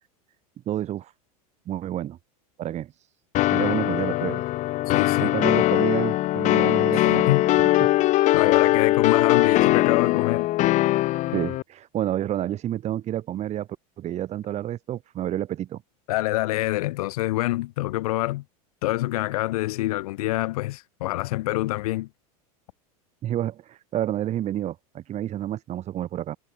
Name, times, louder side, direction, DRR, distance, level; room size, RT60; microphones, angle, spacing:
voice 1, 0.6-1.1 1.6-2.2 2.6-3.1 3.5-4.4 4.7-4.9 5.2-7.4 7.8-7.9 11.3-13.7 14.0-15.8 23.2-26.4, right 12 dB, 35° right, 4.9 m, -29 dB
sound 1, 3.3-11.6, left 16 dB, 40° left, 0.9 m, -21 dB
voice 2, 4.9-5.3 6.9-7.4 8.3-10.5 16.1-18.4 18.8-22.1, left 18 dB, 75° left, 1.5 m, -26 dB
supercardioid pair, 120°, 19 cm